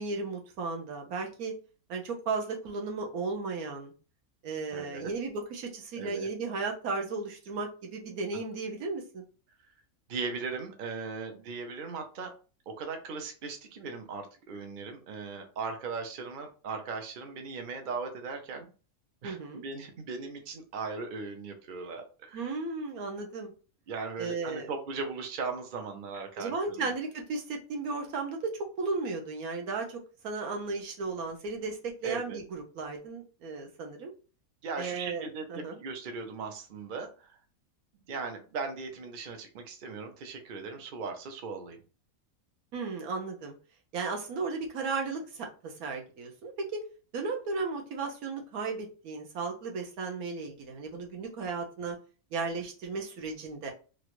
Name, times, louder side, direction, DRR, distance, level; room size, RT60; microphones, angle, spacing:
voice 1, 0.0-1.5 1.9-3.9 4.4-9.2 19.2-19.6 22.3-23.5 24.2-24.7 26.4-34.1 34.8-35.8 42.7-43.5 43.9-46.8 47.1-52.0 52.3-53.7, right 4 dB, 80° right, 2 dB, 1.2 m, -35 dB
voice 2, 4.7-5.1 6.0-6.3 10.1-12.3 12.7-18.7 19.2-22.5 23.9-26.9 32.0-32.4 34.6-37.4 38.1-41.8, right 4 dB, 50° right, 4 dB, 0.6 m, -38 dB
3.1 x 2.5 x 3.0 m, 0.36 s
omnidirectional pair, 1.5 m